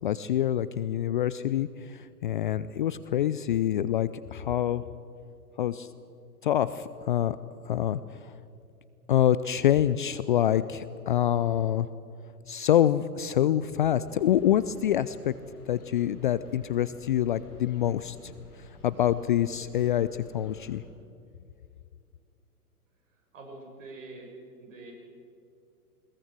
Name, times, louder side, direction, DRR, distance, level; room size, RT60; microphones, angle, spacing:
voice 1, 0.0-4.8 5.6-5.9 6.4-7.4 7.7-8.3 9.1-11.9 12.5-15.3 15.7-18.3 18.8-20.8, left 11 dB, 35° left, 15 dB, 0.4 m, -26 dB
sound 1, 14.1-20.8, left 3 dB, 65° left, 6.6 m, -52 dB
voice 2, 23.1-24.3 24.6-24.9, right 2 dB, 55° right, 1 dB, 6.8 m, -45 dB
21.5 x 21.0 x 7.7 m, 2.5 s
figure-of-eight pair, 115°, 47 cm